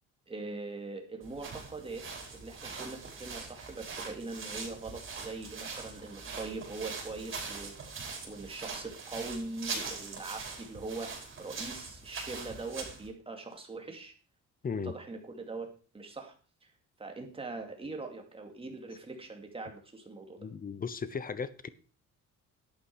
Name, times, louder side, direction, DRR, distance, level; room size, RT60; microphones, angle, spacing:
voice 1, 0.3-7.9 8.2-14.1 14.8-16.3 16.6-16.7 17.0-20.5, right 3 dB, 20° right, 2.6 m, -42 dB
sound 1, 1.2-13.1, right 4 dB, 40° right, 5.3 m, -42 dB
voice 2, 20.4-21.7, left 5 dB, 30° left, 0.8 m, -36 dB
11.5 x 8.9 x 4.9 m
cardioid pair, 130°, 31 cm